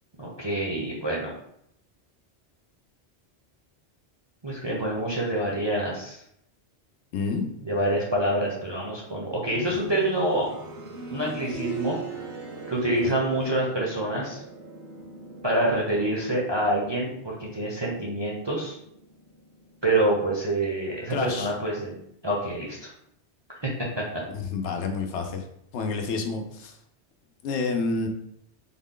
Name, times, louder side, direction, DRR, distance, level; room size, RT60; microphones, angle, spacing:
voice 1, 0.2-1.3 4.4-6.2 7.6-10.5 11.1-12.0 12.7-14.4 15.4-18.8 19.8-22.0 22.2-22.9 23.5-23.7 24.0-24.1, right 1 dB, 30° right, -4 dB, 0.5 m, -26 dB
voice 2, 7.1-7.5 9.7-9.8 13.0-13.2 21.1-21.5 24.3-25.4 25.7-26.8 27.4-28.1, left 4 dB, 80° left, 4 dB, 0.9 m, -29 dB
sound 1, 9.5-20.3 21.7-21.8, right 3 dB, 65° right, 0.9 m, -41 dB
3.7 x 2.1 x 3.7 m, 0.73 s
omnidirectional pair, 1.2 m